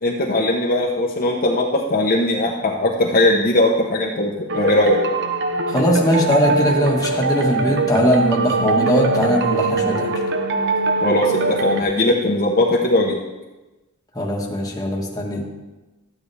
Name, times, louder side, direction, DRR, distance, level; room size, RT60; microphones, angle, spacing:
voice 1, 0.0-5.0 11.0-13.2, left 1 dB, 45° left, -2 dB, 1.1 m, -19 dB
sound 1, 4.5-11.8, right 3 dB, 60° right, 0.9 m, -22 dB
voice 2, 5.7-10.1 14.1-15.4, equal, 20° left, -2 dB, 1.6 m, -20 dB
12.5 x 9.5 x 3.5 m, 1.1 s
head